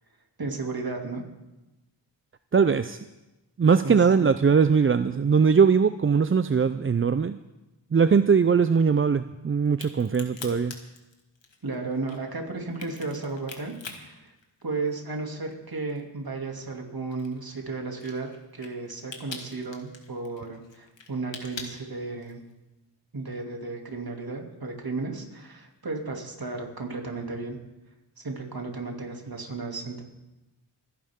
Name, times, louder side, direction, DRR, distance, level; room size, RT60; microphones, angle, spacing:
voice 1, 0.4-1.2 3.8-4.0 11.6-14.3 14.6-22.4 23.1-27.6 28.2-30.0, right 3 dB, 50° right, 2 dB, 2.7 m, -34 dB
voice 2, 2.5-3.0 3.6-7.4 7.9-10.8, right 6 dB, 30° right, 12 dB, 0.4 m, -21 dB
Crack, 9.7-15.2 15.5-22.5, left 4 dB, 75° left, 2.0 m, -44 dB
26.0 x 11.0 x 3.7 m, 1.0 s
cardioid pair, 50°, 45 cm